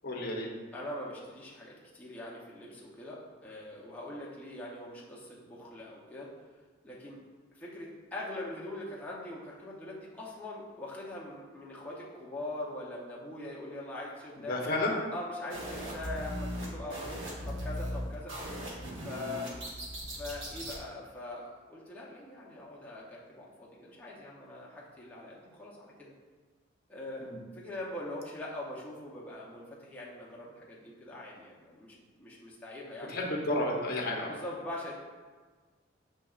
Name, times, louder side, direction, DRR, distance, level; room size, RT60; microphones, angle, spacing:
voice 1, 0.0-0.5 14.5-14.9 27.2-27.4 33.1-34.3, left 1 dB, 45° left, -1 dB, 0.7 m, -31 dB
voice 2, 0.7-6.3 6.8-7.2 7.5-14.8 15.1-18.3 19.0-19.5 20.1-26.1 26.9-33.1 34.3-34.9, left 1 dB, 5° left, -6 dB, 0.6 m, -42 dB
sound 1, 15.5-20.8, equal, 70° right, 1.1 m, -38 dB
7.3 x 2.8 x 2.4 m, 1.4 s
head